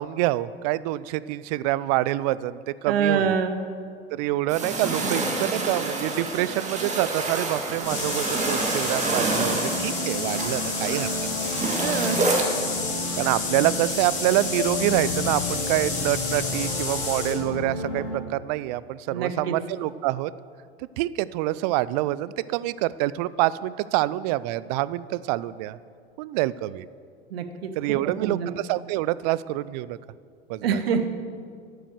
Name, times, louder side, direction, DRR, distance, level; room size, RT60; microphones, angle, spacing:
voice 1, 0.0-3.3 4.1-11.1 11.4-11.5 13.1-20.3 20.8-25.8 26.2-26.9 27.8-30.0 30.5-30.8, right 16 dB, 40° right, 18 dB, 0.4 m, -26 dB
voice 2, 2.9-3.6 11.8-12.2 19.1-19.5 27.3-28.5 30.6-31.1, right 6 dB, 60° right, 9 dB, 1.2 m, -26 dB
sound 1, 4.5-12.4, right 3 dB, 20° right, 2.1 m, -28 dB
sound 2, 7.8-17.4, left 3 dB, 20° left, 3.3 m, -31 dB
sound 3, 9.6-18.2, left 2 dB, 50° left, 2.4 m, -32 dB
11.5 x 9.0 x 6.4 m, 2.2 s
figure-of-eight pair, 85°, 33 cm